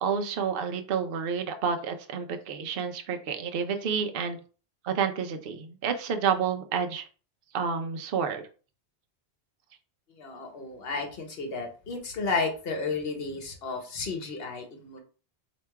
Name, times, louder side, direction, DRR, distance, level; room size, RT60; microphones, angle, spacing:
voice 1, 0.0-4.4 4.8-7.1 7.5-8.4, right 6 dB, 60° right, 6 dB, 0.8 m, -29 dB
voice 2, 10.1-15.0, left 4 dB, 60° left, 4 dB, 1.2 m, -32 dB
3.4 x 2.9 x 4.5 m, 0.37 s
omnidirectional pair, 1.1 m